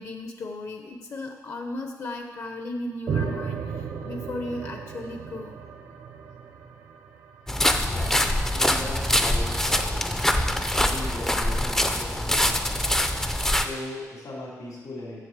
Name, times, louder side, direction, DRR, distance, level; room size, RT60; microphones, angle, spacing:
voice 1, 0.0-5.5, left 2 dB, 50° left, 4 dB, 0.8 m, -35 dB
sound 1, 3.1-7.7, right 6 dB, 75° right, 0.9 m, -34 dB
sound 2, 7.5-13.7, left 1 dB, 5° left, 0.5 m, -24 dB
voice 2, 7.8-10.0 10.7-12.8 13.5-15.2, left 1 dB, 75° left, -5 dB, 3.3 m, -38 dB
7.7 x 6.6 x 7.5 m, 1.4 s
wide cardioid pair, 160°, 6 cm